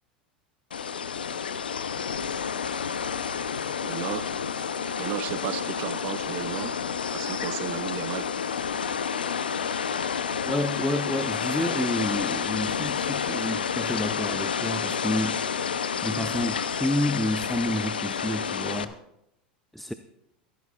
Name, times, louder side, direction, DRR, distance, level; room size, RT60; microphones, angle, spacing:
sound 1, 0.7-18.8, left 7 dB, 85° left, 0.6 m, -30 dB
voice 1, 3.8-4.3 4.8-6.8 7.1-8.3, right 16 dB, 55° right, 17 dB, 0.5 m, -34 dB
voice 2, 10.5-15.5 16.0-19.0 19.7-19.9, left 1 dB, ahead, 10 dB, 0.5 m, -29 dB
15.0 x 14.0 x 2.4 m, 0.83 s
hypercardioid pair, 90°, 5 cm